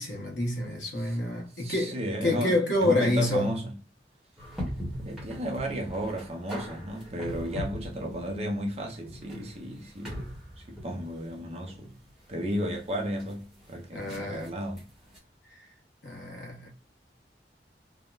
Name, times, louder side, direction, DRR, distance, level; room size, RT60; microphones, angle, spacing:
voice 1, 0.0-1.9 2.2-3.6 13.9-14.5 15.5-15.6 16.0-16.7, left 1 dB, 85° left, 1.1 m, -28 dB
voice 2, 1.6-2.5 2.8-3.7 5.0-10.2 10.6-12.0 12.3-14.9, equal, 35° right, 0.7 m, -33 dB
sound 1, 4.4-15.2, equal, 5° right, 1.1 m, -41 dB
3.4 x 2.1 x 2.4 m
head